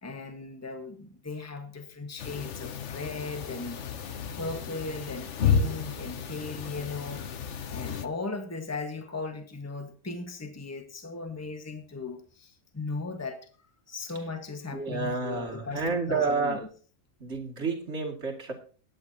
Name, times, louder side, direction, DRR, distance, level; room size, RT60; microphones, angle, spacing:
voice 1, 0.0-3.8 4.3-7.4 7.7-13.4 13.9-16.7, left 3 dB, 10° left, 6 dB, 1.2 m, -37 dB
sound 1, 2.2-8.1, left 6 dB, 55° left, 1.1 m, -32 dB
voice 2, 14.7-16.7 17.2-18.5, right 4 dB, 45° right, 1 dB, 2.5 m, -30 dB
21.5 x 9.3 x 2.8 m, 0.40 s
omnidirectional pair, 1.6 m